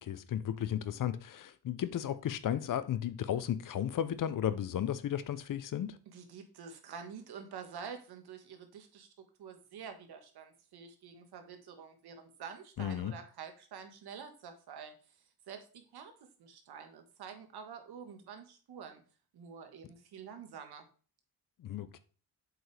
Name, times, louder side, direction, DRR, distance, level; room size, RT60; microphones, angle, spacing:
voice 1, 0.0-6.0 12.8-13.1 21.6-22.0, left 10 dB, 55° left, 0.7 m, -34 dB
voice 2, 6.1-9.1 9.4-14.9 15.5-16.1 16.4-19.0 19.3-20.9, right 6 dB, 75° right, 1.5 m, -48 dB
7.6 x 5.2 x 3.3 m
cardioid pair, 125°, 38 cm